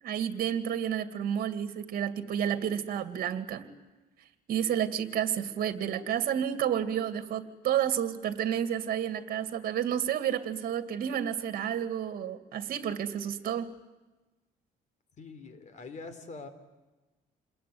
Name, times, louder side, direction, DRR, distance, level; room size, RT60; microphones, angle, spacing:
voice 1, 0.0-3.7 4.5-13.7, right 9 dB, 60° right, 9 dB, 2.3 m, -30 dB
voice 2, 15.2-16.5, left 4 dB, 45° left, 11 dB, 3.8 m, -44 dB
28.0 x 21.5 x 9.5 m, 1.1 s
cardioid pair, 110°, 17 cm